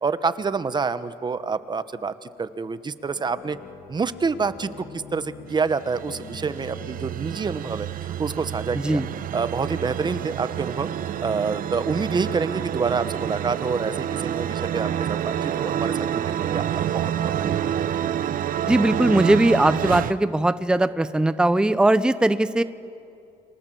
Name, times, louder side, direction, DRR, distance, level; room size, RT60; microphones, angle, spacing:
voice 1, 0.0-3.6 3.9-9.0 9.3-10.9 11.2-17.5, right 5 dB, 25° right, 13 dB, 1.1 m, -27 dB
sound 1, 3.0-8.0, left 4 dB, 65° left, 4.1 m, -45 dB
sound 2, 5.5-20.1, right 10 dB, 55° right, 1.0 m, -28 dB
voice 2, 8.7-9.1 18.7-22.6, right 1 dB, 5° right, 13 dB, 0.8 m, -20 dB
30.0 x 23.5 x 7.8 m, 2.6 s
cardioid pair, 110°, 17 cm